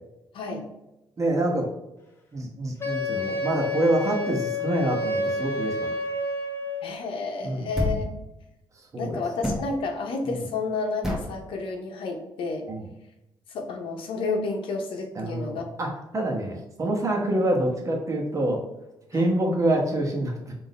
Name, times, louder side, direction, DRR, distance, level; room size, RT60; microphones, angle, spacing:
voice 1, 0.3-0.6 6.8-8.1 9.0-12.7 13.5-15.6 19.1-19.3, left 3 dB, 80° left, 3 dB, 0.8 m, -31 dB
voice 2, 1.2-1.6 2.3-5.9 7.4-7.7 8.9-9.2 10.3-10.4 12.7-12.9 15.1-18.6 19.1-20.6, right 1 dB, 35° right, 0 dB, 1.1 m, -26 dB
Wind instrument woodwind instrument, 2.8-6.9, left 2 dB, 25° left, 0.9 m, -29 dB
sound 1, 7.7-8.1 9.4-9.7 11.0-11.3, left 1 dB, 5° right, 1.1 m, -27 dB
3.6 x 2.7 x 4.1 m, 0.93 s
cardioid pair, 80°, 9 cm